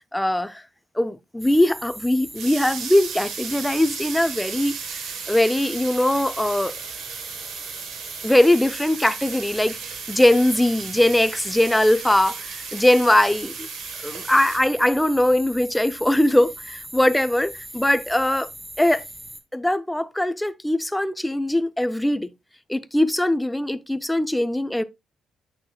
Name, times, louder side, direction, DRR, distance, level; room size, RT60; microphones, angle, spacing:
voice 1, 0.1-0.6 1.0-4.8 5.3-6.7 8.2-9.8 10.1-13.7 14.0-18.5 18.8-19.0 19.5-22.3 22.7-24.8, left 1 dB, 5° left, 0.5 m, -21 dB
sound 1, 1.4-19.4, right 1 dB, 10° right, 1.1 m, -40 dB
sound 2, 2.4-14.6, right 7 dB, 75° right, 1.2 m, -36 dB
8.6 x 6.0 x 2.3 m
cardioid pair, 90°, 0 cm